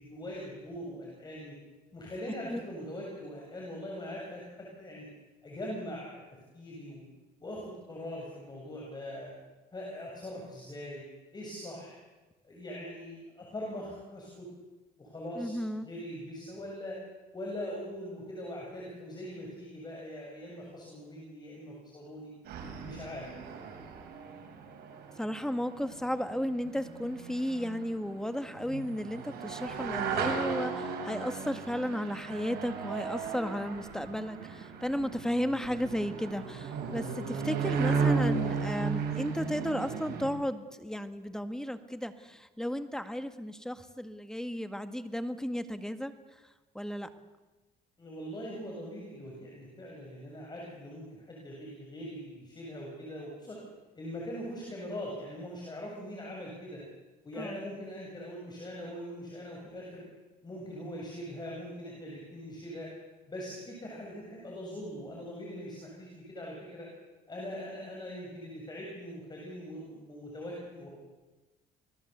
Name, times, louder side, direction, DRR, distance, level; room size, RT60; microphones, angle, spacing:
voice 1, 0.0-1.6 1.9-5.1 5.4-6.2 6.5-7.1 7.4-9.3 9.7-11.0 11.3-11.9 12.4-14.5 15.0-17.0 17.3-22.3 22.8-23.3 48.0-53.6 54.0-56.8 57.2-60.0 60.4-62.9 63.3-66.9 67.3-70.9, equal, 25° left, -2 dB, 7.3 m, -42 dB
voice 2, 15.4-15.9 25.2-46.1 46.7-47.1 57.4-57.6, equal, 5° left, 9 dB, 1.8 m, -34 dB
sound 1, 22.5-40.3, right 5 dB, 70° right, 5.8 m, -35 dB
27.0 x 19.0 x 8.2 m, 1.2 s
cardioid pair, 110°, 17 cm